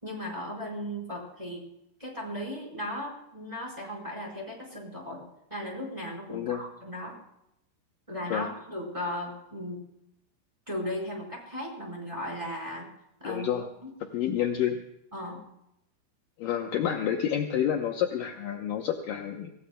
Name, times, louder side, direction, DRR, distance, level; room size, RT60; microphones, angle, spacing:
voice 1, 0.0-1.6 2.0-5.2 5.5-7.2 8.1-9.8 10.7-12.9 13.2-13.5 13.8-13.9 15.1-15.4, equal, 5° right, -1 dB, 4.3 m, -36 dB
voice 2, 6.3-6.6 8.3-8.5 13.2-13.7 14.0-14.8 16.4-19.5, left 9 dB, 80° left, 3 dB, 1.9 m, -29 dB
25.5 x 17.0 x 2.3 m, 0.83 s
omnidirectional pair, 5.1 m